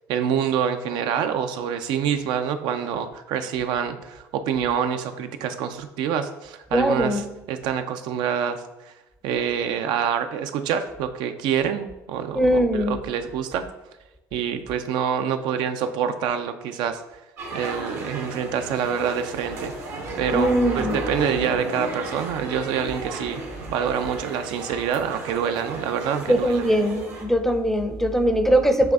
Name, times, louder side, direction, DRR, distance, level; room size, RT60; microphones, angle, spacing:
voice 1, 0.1-8.9 9.2-13.7 14.3-17.0 17.5-19.7 20.2-23.4 23.7-26.6, right 8 dB, 65° right, 8 dB, 0.4 m, -26 dB
voice 2, 6.7-7.2 12.3-13.0 20.3-21.0 26.3-28.9, equal, 5° left, 7 dB, 0.5 m, -21 dB
sound 1, 17.4-27.2, right 2 dB, 85° right, 1.2 m, -34 dB
7.6 x 2.6 x 2.3 m, 1.0 s
hypercardioid pair, 65°, 8 cm